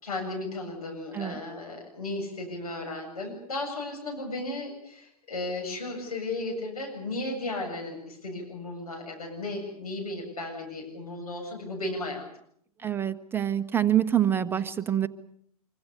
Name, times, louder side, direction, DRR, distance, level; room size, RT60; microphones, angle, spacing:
voice 1, 0.0-12.3, left 2 dB, 70° left, 1 dB, 7.7 m, -35 dB
voice 2, 12.8-15.1, right 10 dB, 10° right, 9 dB, 1.1 m, -26 dB
26.0 x 24.5 x 6.8 m, 0.66 s
figure-of-eight pair, 100°, 20 cm